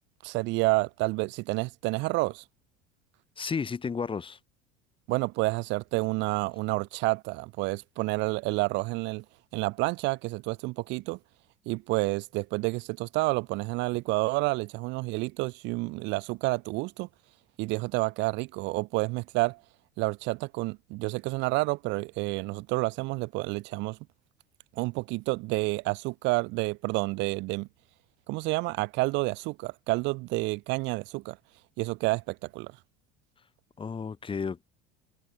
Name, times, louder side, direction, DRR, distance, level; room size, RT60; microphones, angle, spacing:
voice 1, 0.2-2.4 5.1-9.2 9.5-11.2 11.7-17.1 17.6-19.6 20.0-24.0 24.8-27.7 28.3-31.4 31.8-32.7, right 23 dB, 60° right, 0.8 m, -29 dB
voice 2, 3.4-4.4 33.8-34.6, left 5 dB, 25° left, 5.2 m, -32 dB
supercardioid pair, 100°, 21 cm